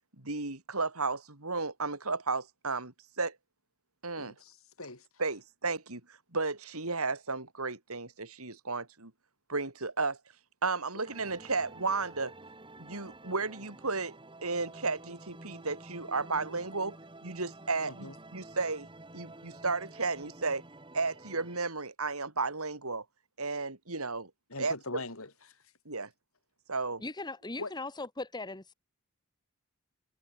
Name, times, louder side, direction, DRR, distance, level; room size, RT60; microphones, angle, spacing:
voice 1, 0.2-3.4 4.0-4.3 5.2-9.1 9.5-10.2 10.6-12.3 12.8-18.9 19.1-20.6 20.9-23.0 23.4-24.3 24.6-25.0 25.9-26.1 26.7-27.0, right 3 dB, 80° right, 4.4 m, -33 dB
voice 2, 4.2-5.1 17.8-18.1 24.5-25.6 27.6-27.7, left 2 dB, 70° left, 6.8 m, -42 dB
sound 1, 11.0-21.6, right 2 dB, 25° right, 5.7 m, -50 dB
voice 3, 27.0-28.7, left 2 dB, 20° left, 1.4 m, -39 dB
head